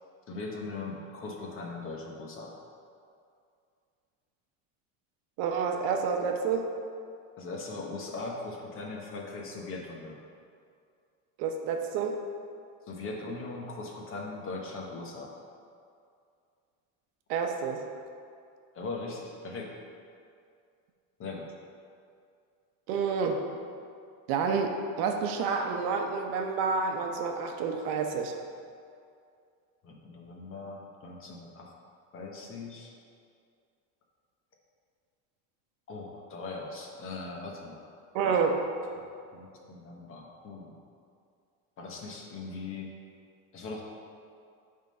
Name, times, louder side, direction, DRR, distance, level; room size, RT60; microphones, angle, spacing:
voice 1, 0.3-2.6 7.4-10.2 12.9-15.3 18.7-19.7 21.2-21.5 29.8-31.7 32.1-32.9 35.9-37.9 39.0-39.1 39.3-40.8 41.8-42.9 43.5-43.9, left 3 dB, 30° left, 0 dB, 1.0 m, -40 dB
voice 2, 5.4-6.7 11.4-12.2 17.3-17.8 22.9-23.4 24.3-28.3 38.1-38.6, right 5 dB, 65° right, 3 dB, 0.9 m, -29 dB
8.0 x 3.7 x 5.4 m, 2.3 s
cardioid pair, 150°, 39 cm